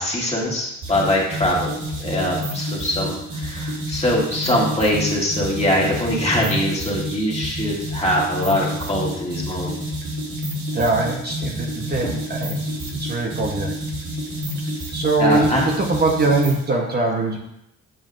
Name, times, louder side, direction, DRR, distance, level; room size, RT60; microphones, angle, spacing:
voice 1, 0.0-1.7 2.0-9.8 12.0-12.1 15.2-15.6, left 1 dB, 20° left, -3 dB, 2.0 m, -22 dB
sound 1, 0.8-16.7, equal, 85° right, 2.4 m, -29 dB
voice 2, 10.7-12.6 12.9-13.7 14.9-17.4, right 3 dB, 35° right, -1 dB, 1.0 m, -22 dB
7.7 x 5.5 x 2.5 m, 0.81 s
cardioid pair, 90°, 30 cm